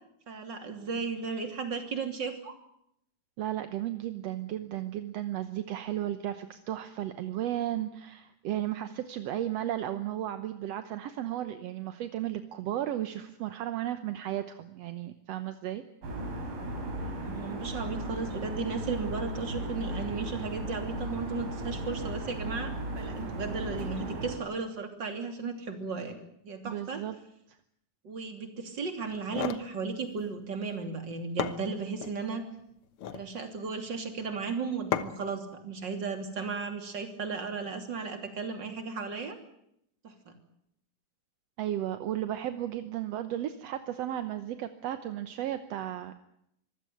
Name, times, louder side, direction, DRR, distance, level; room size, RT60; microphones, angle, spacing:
voice 1, 0.3-2.6 16.9-26.2 26.4-27.0 28.0-32.4 33.1-39.4 40.0-40.1, right 5 dB, 35° right, 6 dB, 3.4 m, -35 dB
voice 2, 3.4-15.8 26.6-27.1 27.5-27.6 41.6-46.1, right 12 dB, 65° right, 10 dB, 1.7 m, -34 dB
sound 1, 16.0-24.4, right 1 dB, 85° right, 6.5 m, -36 dB
sound 2, 29.1-29.7 30.9-31.0 31.4-32.2 32.8-33.3 34.9-35.3, left 9 dB, 60° left, 1.4 m, -34 dB
25.0 x 16.0 x 9.3 m, 0.75 s
omnidirectional pair, 3.9 m